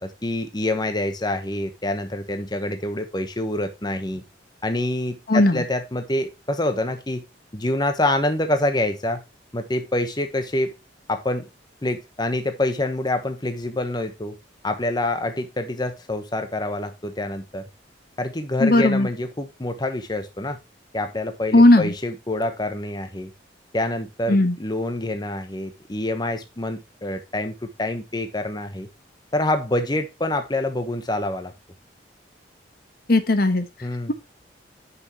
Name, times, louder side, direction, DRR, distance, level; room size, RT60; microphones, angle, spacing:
voice 1, 0.0-4.2 4.6-7.2 7.5-9.2 9.5-10.7 11.1-11.5 11.8-14.4 14.6-17.6 18.2-20.6 20.9-23.3 23.7-28.9 29.3-31.5 33.8-34.1, left 1 dB, 20° left, 1.0 m, -26 dB
voice 2, 5.3-5.6 18.6-19.1 21.5-21.9 24.3-24.5 33.1-33.6, left 1 dB, 55° left, 1.1 m, -16 dB
9.7 x 6.0 x 2.9 m
head